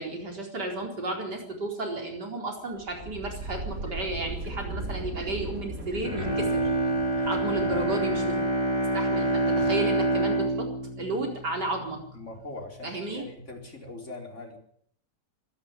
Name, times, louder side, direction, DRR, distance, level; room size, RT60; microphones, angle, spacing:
voice 1, 0.0-6.7 7.3-8.4 8.9-10.7 11.0-12.0 12.8-13.3, right 2 dB, 85° right, 2 dB, 4.9 m, -33 dB
sound 1, 2.8-8.4, right 2 dB, 55° right, 2.8 m, -38 dB
Bowed string instrument, 6.0-12.2 12.6-12.7, right 1 dB, 20° right, 4.2 m, -27 dB
voice 2, 7.6-8.2 12.1-14.6, left 2 dB, 45° left, 2 dB, 4.8 m, -42 dB
24.5 x 11.0 x 9.9 m, 0.66 s
omnidirectional pair, 1.8 m